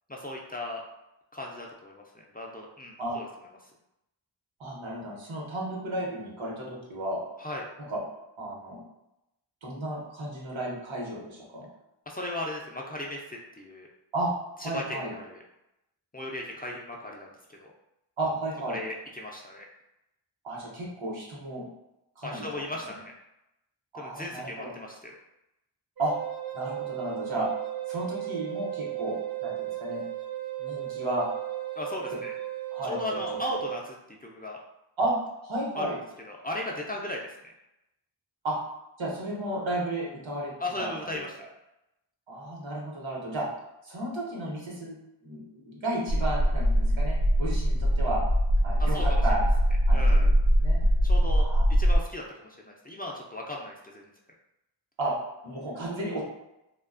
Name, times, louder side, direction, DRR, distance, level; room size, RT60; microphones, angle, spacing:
voice 1, 0.1-0.8 1.3-2.0 2.3-3.3 7.4-7.7 12.1-13.9 14.6-15.4 16.1-17.7 18.7-19.6 22.2-23.1 23.9-25.1 31.8-32.3 32.8-34.6 35.8-35.9 36.3-37.5 40.6-41.5 48.8-49.2 49.9-50.3 51.0-54.0, left 1 dB, 20° left, -2 dB, 0.3 m, -37 dB
voice 2, 4.6-7.2 7.9-8.0 8.4-8.8 9.6-11.7 14.1-14.3 14.6-15.1 18.2-18.8 20.4-21.6 22.2-22.5 23.9-24.7 26.0-26.1 26.5-27.5 27.9-30.0 30.6-31.2 32.7-33.0 35.0-36.0 38.4-38.6 39.0-40.5 40.8-41.2 42.3-43.5 43.8-45.0 45.2-48.2 48.6-49.4 49.9-50.3 50.6-50.8 51.3-51.7 55.0-56.2, right 1 dB, 85° right, -4 dB, 0.9 m, -33 dB
Wind instrument woodwind instrument, 26.0-33.8, right 14 dB, 50° right, 0.5 m, -35 dB
sound 1, 46.1-52.0, equal, 80° left, 0.5 m, -22 dB
2.4 x 2.2 x 2.4 m, 0.89 s
wide cardioid pair, 40°, 46 cm